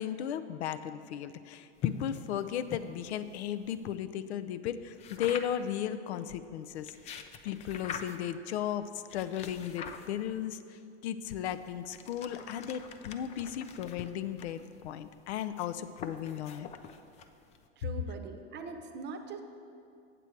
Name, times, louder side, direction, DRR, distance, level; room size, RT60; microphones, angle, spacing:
voice 1, 0.0-16.7, left 10 dB, 70° left, 13 dB, 0.5 m, -36 dB
sound 1, 1.8-4.0 5.0-5.8 6.7-8.4 9.1-10.5 11.2-17.7, left 7 dB, 20° left, 0.3 m, -43 dB
voice 2, 17.8-19.4, right 5 dB, 30° right, 6 dB, 0.8 m, -42 dB
7.9 x 7.6 x 4.5 m, 2.5 s
hypercardioid pair, 100°, 34 cm